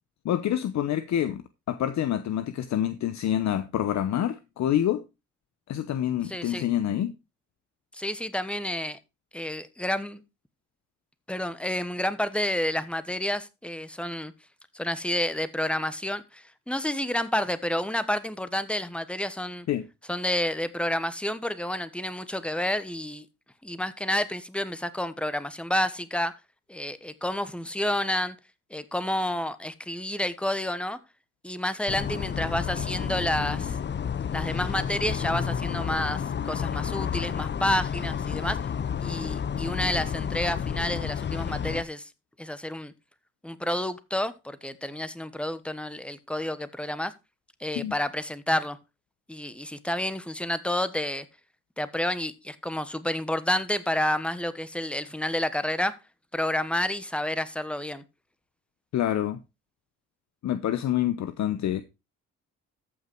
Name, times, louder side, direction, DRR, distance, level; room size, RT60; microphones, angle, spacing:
voice 1, 0.2-1.4 1.7-5.0 5.7-7.1 19.7-19.8 47.7-47.9 58.9-59.4 60.4-61.8, left 11 dB, 65° left, 0.9 m, -27 dB
voice 2, 6.2-6.6 7.9-9.0 9.3-10.2 11.3-14.3 14.7-19.7 20.1-23.2 23.6-26.3 26.7-28.4 28.7-31.0 31.4-33.8 34.3-38.6 39.0-42.1 42.4-42.9 43.4-47.1 47.6-48.8 49.3-51.2 51.8-56.0 56.3-58.0, left 1 dB, 5° left, 1.2 m, -29 dB
sound 1, 31.9-41.8, left 7 dB, 35° left, 0.7 m, -30 dB
14.0 x 6.0 x 4.5 m
cardioid pair, 90°, 30 cm